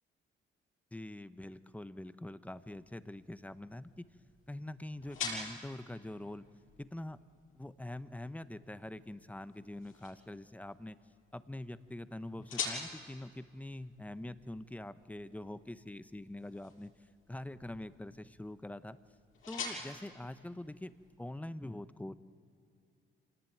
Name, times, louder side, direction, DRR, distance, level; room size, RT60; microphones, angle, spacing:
voice 1, 0.9-4.1 4.5-6.4 6.8-7.2 7.5-11.0 11.3-16.9 17.3-19.0 19.5-22.2, left 1 dB, 5° left, 13 dB, 0.9 m, -44 dB
sound 1, 2.4-21.3, left 4 dB, 85° left, 7.1 m, -48 dB
26.5 x 18.0 x 9.2 m, 2.3 s
cardioid pair, 90°, 20 cm